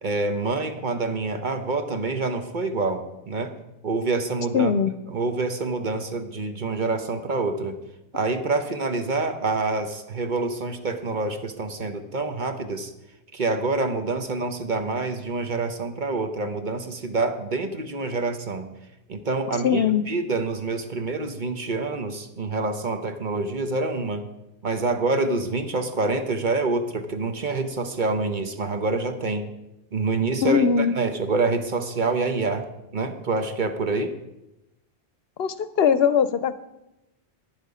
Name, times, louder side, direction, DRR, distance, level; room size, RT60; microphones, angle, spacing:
voice 1, 0.0-3.5 3.8-4.7 5.1-7.8 8.1-12.9 13.3-18.7 19.1-24.2 24.6-29.5 29.9-32.7 32.9-34.1, right 3 dB, 50° right, 7 dB, 1.0 m, -26 dB
voice 2, 4.5-4.9 19.6-20.1 30.4-30.9 35.4-36.5, left 7 dB, 70° left, 14 dB, 0.8 m, -20 dB
11.0 x 10.0 x 4.9 m, 0.93 s
omnidirectional pair, 1.1 m